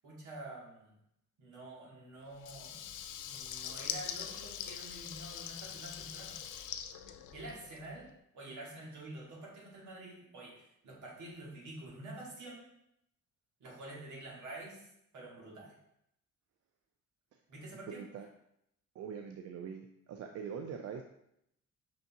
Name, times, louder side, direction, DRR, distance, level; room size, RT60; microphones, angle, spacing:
voice 1, 0.0-1.0 1.4-2.9 3.3-6.4 7.3-8.1 8.3-12.7 13.6-14.9 15.1-15.7 17.5-18.0, right 1 dB, 75° right, -3 dB, 1.7 m, -48 dB
Water tap faucet / Liquid, 2.4-7.9, left 9 dB, 80° left, 0.5 m, -43 dB
voice 2, 17.9-18.3 18.9-21.0, right 7 dB, 55° right, 4 dB, 0.4 m, -43 dB
5.1 x 3.4 x 2.7 m, 0.78 s
cardioid pair, 90°, 30 cm